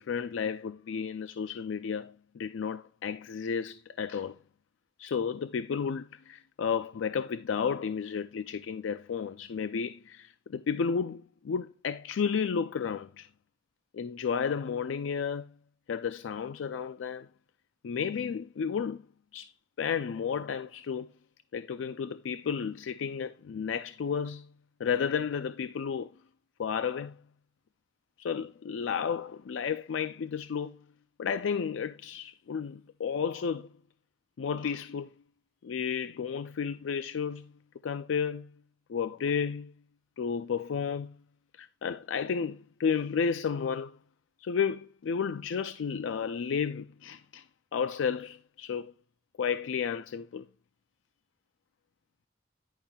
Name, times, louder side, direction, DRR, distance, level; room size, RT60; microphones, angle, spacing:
voice 1, 0.0-4.4 5.0-13.3 13.9-15.5 15.9-17.3 17.8-19.0 19.3-21.1 21.5-24.5 24.8-26.1 26.6-27.2 28.2-30.8 31.2-33.7 34.4-35.1 35.6-37.5 37.8-38.5 38.9-39.7 40.2-41.2 41.5-44.0 44.4-47.5 47.7-48.9 49.4-50.4, left 6 dB, 90° left, 0.4 m, -32 dB
10.5 x 9.8 x 2.3 m
head